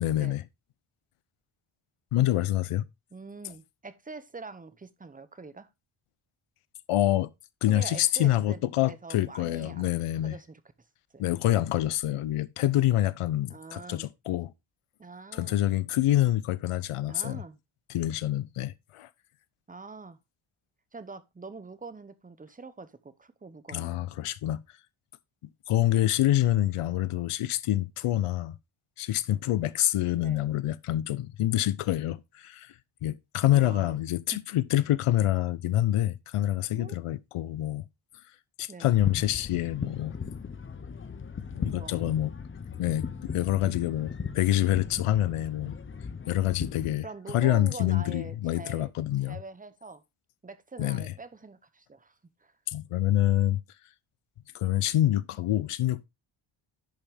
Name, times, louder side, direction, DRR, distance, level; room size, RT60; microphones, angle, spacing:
voice 1, 0.0-0.4 2.1-2.9 6.9-7.3 7.6-10.4 11.2-14.5 15.3-17.4 17.9-19.1 23.7-24.6 25.7-28.5 29.0-32.7 33.0-37.9 38.6-40.2 41.5-42.3 42.8-45.8 46.3-47.1 47.3-49.4 50.8-51.1 52.7-53.6 54.5-56.1, left 13 dB, 85° left, 0.7 m, -26 dB
voice 2, 3.1-5.7 7.7-10.6 11.1-11.2 13.5-14.1 15.0-15.6 17.1-17.6 19.7-20.2 20.9-24.0 30.1-30.4 33.4-33.9 34.3-34.4 36.7-37.0 38.7-38.9 41.7-42.0 47.0-48.9 49.2-50.0 50.4-52.6, right 4 dB, 15° right, 0.7 m, -44 dB
sound 1, 38.9-46.9, left 5 dB, 25° left, 0.7 m, -38 dB
10.5 x 5.7 x 3.4 m
wide cardioid pair, 140°, 50 cm